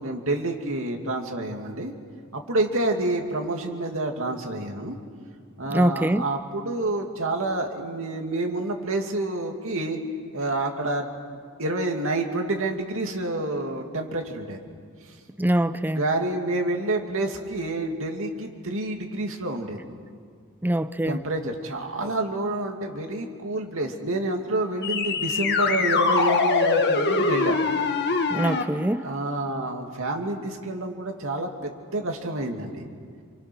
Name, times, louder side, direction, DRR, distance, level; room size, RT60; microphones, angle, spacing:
voice 1, 0.0-1.9 2.3-5.0 5.6-10.0 10.3-11.2 11.6-14.6 15.9-19.8 21.1-27.6 29.0-32.8, right 2 dB, 65° right, 3 dB, 2.6 m, -28 dB
voice 2, 5.7-6.2 15.4-16.0 20.6-21.2 28.3-29.0, right 1 dB, 10° right, 12 dB, 0.6 m, -23 dB
sound 1, 24.8-28.6, left 4 dB, 50° left, 1.7 m, -23 dB
28.0 x 27.5 x 6.2 m, 2.1 s
head